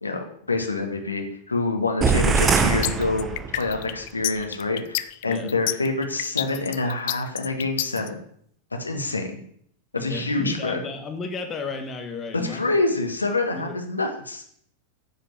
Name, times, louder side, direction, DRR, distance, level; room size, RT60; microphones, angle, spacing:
voice 1, 0.0-3.3 3.6-8.2 8.8-9.4 9.9-10.8 12.3-14.4, left 3 dB, 80° left, 3 dB, 1.7 m, -26 dB
sound 1, 2.0-3.9, right 5 dB, 20° right, 0.8 m, -22 dB
sound 2, 2.5-8.1, left 16 dB, 50° left, 0.5 m, -29 dB
voice 2, 10.0-12.6 13.5-13.8, left 4 dB, 25° left, 4 dB, 1.4 m, -33 dB
9.9 x 5.1 x 7.7 m, 0.64 s
figure-of-eight pair, 90°, 0 cm